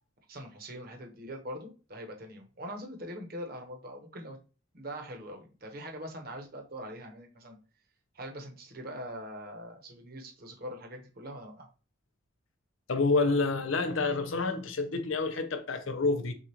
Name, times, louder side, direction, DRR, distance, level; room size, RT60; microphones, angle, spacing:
voice 1, 0.3-4.4 4.7-7.6 8.1-11.7, equal, 50° right, 1.0 m, -42 dB
voice 2, 12.9-16.3, left 3 dB, 85° left, 0.7 m, -28 dB
6.5 x 2.4 x 2.9 m
head